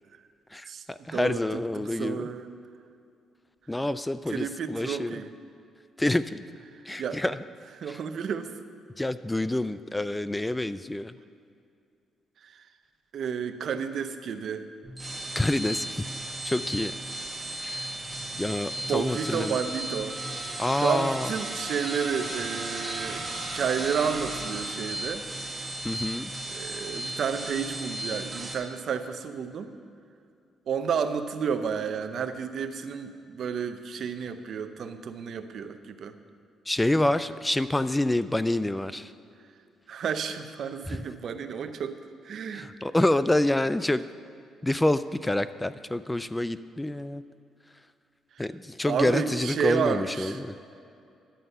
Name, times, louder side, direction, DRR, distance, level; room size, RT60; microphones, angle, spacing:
voice 1, 0.5-2.3 3.7-5.2 6.0-6.4 6.9-7.4 7.8-8.0 9.0-11.2 15.3-16.0 16.4-16.9 17.6-17.9 18.4-19.6 20.6-21.3 25.8-26.3 36.7-39.1 40.9-41.1 42.5-44.0 44.6-47.2 48.4-50.6, left 1 dB, 10° left, 14 dB, 0.3 m, -27 dB
voice 2, 1.8-2.5 4.3-5.3 7.0-7.2 7.8-8.5 13.1-14.6 18.9-20.2 20.8-25.2 26.5-29.7 30.7-36.1 39.9-42.0 42.2-42.7 48.8-50.4, right 7 dB, 60° right, 9 dB, 0.7 m, -31 dB
sound 1, 14.8-28.5, right 1 dB, 25° right, 1.8 m, -35 dB
11.5 x 9.0 x 5.5 m, 2.5 s
cardioid pair, 90°, 0 cm